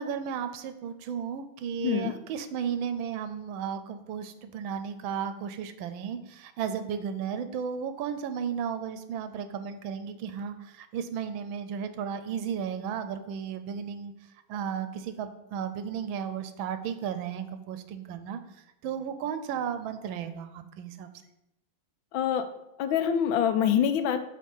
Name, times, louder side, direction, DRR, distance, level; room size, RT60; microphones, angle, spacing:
voice 1, 0.0-14.1 14.5-21.1, right 7 dB, 90° right, 10 dB, 1.4 m, -34 dB
voice 2, 1.8-2.1 22.1-22.5 22.8-24.2, left 9 dB, 85° left, 10 dB, 1.4 m, -25 dB
6.3 x 4.0 x 5.4 m, 0.86 s
omnidirectional pair, 2.1 m